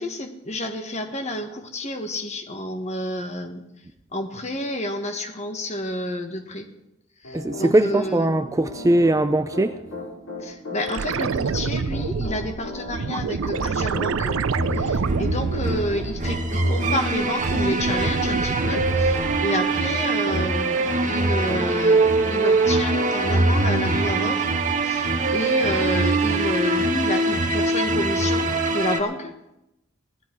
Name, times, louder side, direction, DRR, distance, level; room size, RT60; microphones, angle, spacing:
voice 1, 0.0-3.6 4.1-6.7 7.2-8.3 10.4-14.4 14.7-24.5 24.8-29.3, left 1 dB, 35° left, 6 dB, 1.5 m, -29 dB
Piano, 7.2-22.4 22.9-23.3, left 2 dB, 90° left, 4.6 m, -36 dB
voice 2, 7.3-9.7, right 1 dB, 15° right, 9 dB, 0.4 m, -20 dB
sound 1, 10.9-16.7 17.0-19.6 22.0-22.1, right 5 dB, 80° right, 0.5 m, -28 dB
sound 2, 14.6-29.0, right 2 dB, 40° right, 1.3 m, -23 dB
17.5 x 12.0 x 4.6 m, 0.88 s
head